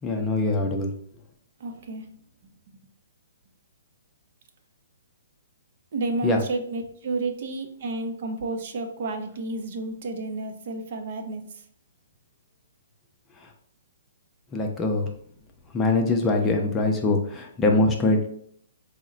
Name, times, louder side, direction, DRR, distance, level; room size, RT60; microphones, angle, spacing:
voice 1, 0.0-0.9 6.2-6.4 14.5-15.1 15.7-18.3, left 2 dB, 15° left, 2 dB, 0.5 m, -23 dB
voice 2, 1.6-2.1 5.9-11.4, right 2 dB, 55° right, 5 dB, 0.6 m, -31 dB
3.8 x 2.1 x 3.7 m, 0.63 s
hypercardioid pair, 150°, 0 cm